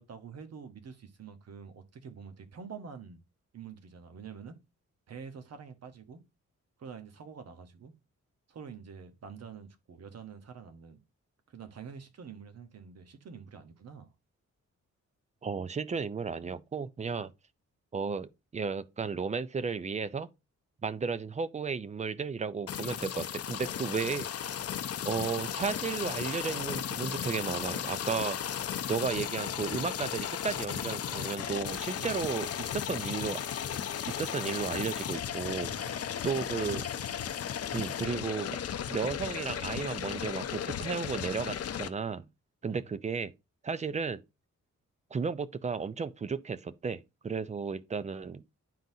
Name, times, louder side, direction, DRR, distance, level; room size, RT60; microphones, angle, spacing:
voice 1, 0.0-3.2 3.5-4.6 5.1-6.2 6.8-7.9 8.5-11.0 11.5-14.1 32.0-32.2 35.6-36.6 42.7-42.8, right 6 dB, 55° right, 1.0 m, -47 dB
voice 2, 15.4-17.3 17.9-20.3 20.8-24.6 25.0-28.4 28.9-33.4 34.1-36.8 37.7-38.6 38.9-42.2 42.6-43.3 43.6-44.2 45.1-48.4, right 5 dB, 25° right, 0.3 m, -34 dB
sound 1, 22.7-41.9, left 9 dB, 55° left, 0.5 m, -35 dB
10.5 x 3.8 x 2.7 m
wide cardioid pair, 175°, 30 cm